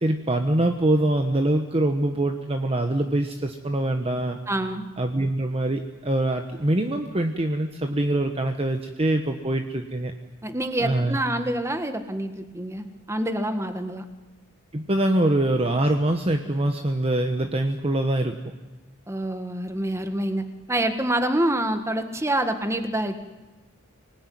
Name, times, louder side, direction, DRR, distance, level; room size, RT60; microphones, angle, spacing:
voice 1, 0.0-4.4 5.0-10.1 10.8-11.2 14.7-18.3, right 1 dB, 30° right, 5 dB, 1.2 m, -24 dB
voice 2, 4.5-4.9 10.4-14.0 19.1-23.2, right 1 dB, 15° right, 7 dB, 1.7 m, -27 dB
25.5 x 19.0 x 9.5 m, 1.1 s
head